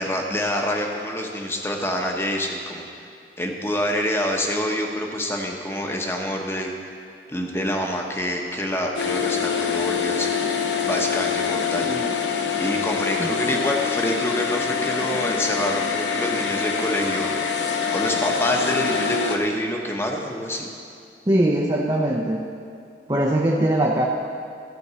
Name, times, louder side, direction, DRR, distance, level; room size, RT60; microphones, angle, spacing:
voice 1, 0.0-2.9 3.4-6.7 7.3-10.3 10.8-11.9 12.6-17.3 17.9-20.7, equal, 15° left, 1 dB, 1.0 m, -26 dB
sound 1, 9.0-19.4, left 6 dB, 90° left, 0.9 m, -25 dB
voice 2, 11.8-12.1 13.2-13.6 21.3-22.4 23.1-24.1, right 1 dB, 20° right, -2 dB, 0.7 m, -22 dB
14.0 x 5.3 x 8.2 m, 2.5 s
head